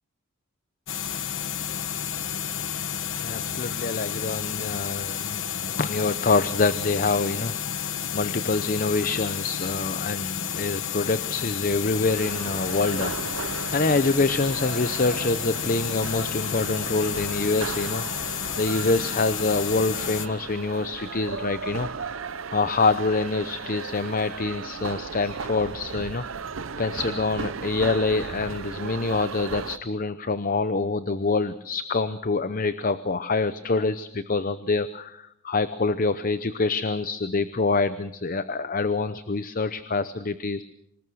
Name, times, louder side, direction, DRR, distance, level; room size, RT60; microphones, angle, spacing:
sound 1, 0.9-20.3, left 9 dB, 65° left, 1.2 m, -31 dB
voice 1, 3.2-7.5 7.8-22.1 22.5-26.2 26.8-40.6, left 3 dB, 40° left, 13 dB, 0.8 m, -26 dB
sound 2, 12.1-29.8, right 5 dB, 70° right, 0.8 m, -36 dB
26.0 x 20.0 x 6.4 m, 0.77 s
head